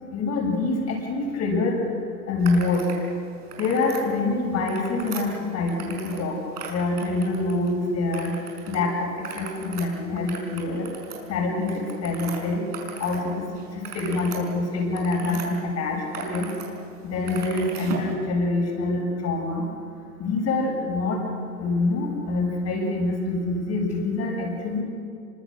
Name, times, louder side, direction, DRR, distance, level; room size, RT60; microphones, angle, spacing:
voice 1, 0.1-1.8 2.3-2.9 3.6-6.3 6.7-8.3 8.7-9.1 9.4-10.9 11.3-12.6 13.0-13.4 13.9-16.5 17.1-19.6 20.2-21.2 21.6-24.8, left 3 dB, 35° left, 1 dB, 6.9 m, -25 dB
sound 1, 2.4-3.0 3.4-4.0 4.5-6.3 6.5-7.7 8.1-8.8 9.1-13.2 13.6-15.5 15.9-16.7 16.9-18.1, right 6 dB, 75° right, 6.1 m, -38 dB
27.5 x 25.0 x 6.4 m, 2.5 s
hypercardioid pair, 110°, 47 cm